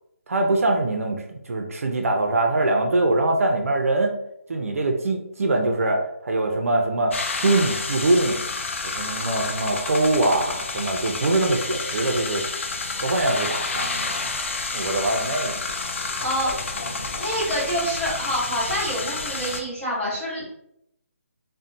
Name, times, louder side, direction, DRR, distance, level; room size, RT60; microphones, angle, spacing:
voice 1, 0.3-4.2 4.5-7.1 7.4-8.4 8.8-12.4 12.9-14.3 14.7-15.6 16.9-17.1, right 2 dB, 70° right, 2 dB, 0.5 m, -23 dB
sound 1, 7.1-19.6, left 3 dB, 55° left, 0.3 m, -30 dB
voice 2, 16.2-16.8 17.2-20.5, equal, 10° left, -12 dB, 0.9 m, -27 dB
2.6 x 2.1 x 2.5 m, 0.77 s
hypercardioid pair, 170°, 8 cm